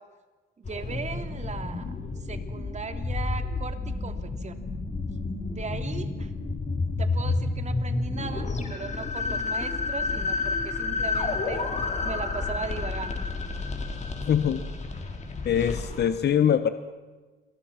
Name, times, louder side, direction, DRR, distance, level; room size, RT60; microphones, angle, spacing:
sound 1, 0.6-16.1, left 3 dB, 35° left, 4.3 m, -30 dB
voice 1, 0.6-1.8 2.2-4.6 5.5-6.3 7.0-11.6 12.0-13.2, right 4 dB, 35° right, 7 dB, 2.9 m, -38 dB
voice 2, 14.3-14.6 15.4-16.7, left 9 dB, 55° left, 11 dB, 1.3 m, -23 dB
29.0 x 23.0 x 5.9 m, 1.3 s
cardioid pair, 90°, 20 cm